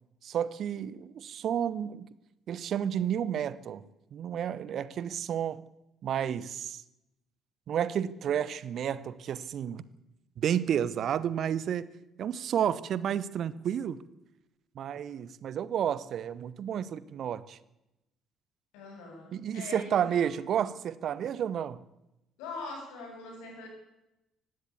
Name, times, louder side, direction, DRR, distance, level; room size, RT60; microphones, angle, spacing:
voice 1, 0.2-2.1 2.5-3.8 4.1-5.6 6.0-6.8 7.7-9.8 10.4-11.9 12.2-14.0 14.8-17.6 19.3-21.8, right 9 dB, 50° right, 0.9 m, -31 dB
voice 2, 18.7-20.5 22.4-23.7, left 3 dB, 65° left, 7.7 m, -43 dB
18.5 x 16.5 x 8.5 m
figure-of-eight pair, 50°, 0 cm